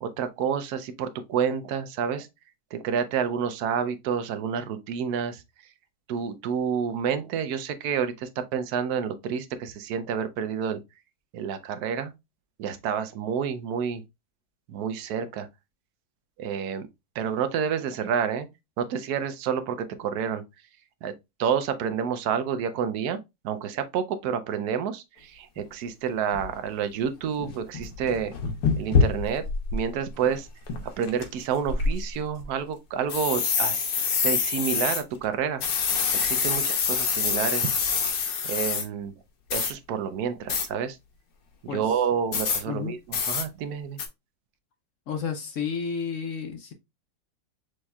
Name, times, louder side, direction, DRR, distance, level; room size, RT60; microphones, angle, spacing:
voice 1, 0.0-2.3 2.7-5.4 6.1-10.8 11.3-12.1 12.6-14.0 14.7-15.5 16.4-16.9 17.2-18.5 18.8-20.4 21.0-21.1 21.4-23.2 23.4-28.3 28.8-29.4 29.7-30.5 31.0-35.6 36.2-38.0 38.4-39.1 39.5-41.0 41.6-44.0, right 7 dB, 75° right, 1.1 m, -29 dB
sound 1, 25.6-25.7 26.3-26.5 27.0-27.1 27.4-29.8 30.2-30.3 30.7-31.2 31.7-32.5 33.1-35.0 35.6-38.8 39.5-39.7 40.5-40.7 42.3-42.6 43.1-43.4 44.0-44.1, left 5 dB, 85° left, 1.4 m, -26 dB
voice 2, 45.1-46.7, left 6 dB, 65° left, 0.9 m, -31 dB
6.3 x 3.1 x 2.2 m
omnidirectional pair, 1.7 m